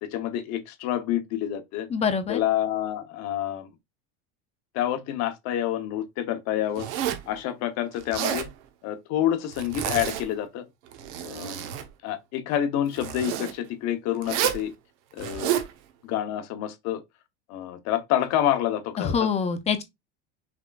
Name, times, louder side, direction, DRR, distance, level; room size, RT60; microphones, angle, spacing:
voice 1, 0.0-1.9 2.3-3.7 4.7-6.9 7.3-8.5 8.8-10.6 11.2-11.7 12.0-14.7 15.1-15.5 16.0-17.0 17.5-19.3, left 11 dB, 45° left, 0.9 m, -28 dB
voice 2, 1.9-2.4 19.0-19.8, left 6 dB, 20° left, 0.5 m, -25 dB
Zipper (clothing), 6.8-7.3 8.0-8.5 9.5-10.3 10.9-11.9 12.9-13.5 14.2-14.7 15.2-15.7, right 10 dB, 70° right, 1.2 m, -29 dB
5.9 x 3.5 x 2.4 m
cardioid pair, 160°, 37 cm